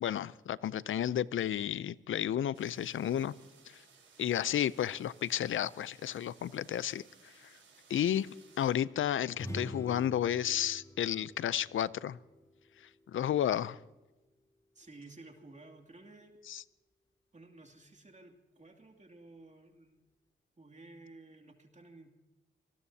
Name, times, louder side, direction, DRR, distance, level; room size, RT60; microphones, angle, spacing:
voice 1, 0.0-3.3 4.2-7.0 7.9-8.3 8.6-12.2 13.1-13.8 16.5-16.6, left 10 dB, 80° left, 19 dB, 0.5 m, -32 dB
sound 1, 2.5-8.7, right 5 dB, 80° right, 4.6 m, -61 dB
sound 2, 9.3-13.0, equal, 15° left, 3.2 m, -46 dB
voice 2, 14.7-16.3 17.3-20.0 20.6-22.1, right 2 dB, 35° right, 3 dB, 2.6 m, -54 dB
24.5 x 19.0 x 2.8 m, 1.1 s
cardioid pair, 55°, 20 cm